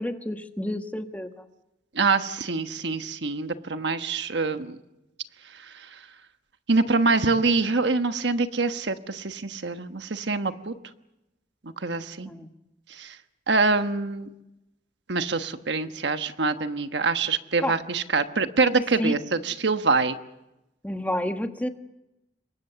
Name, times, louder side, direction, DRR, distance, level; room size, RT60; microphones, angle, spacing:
voice 1, 0.0-1.4 12.2-12.5 17.6-17.8 19.0-19.2 20.8-21.7, left 1 dB, 10° left, 6 dB, 1.3 m, -29 dB
voice 2, 1.9-4.8 6.7-10.7 11.8-12.3 13.0-13.2 13.5-14.3 15.1-20.1, right 3 dB, 75° right, 9 dB, 1.2 m, -25 dB
27.0 x 23.0 x 6.9 m, 0.93 s
head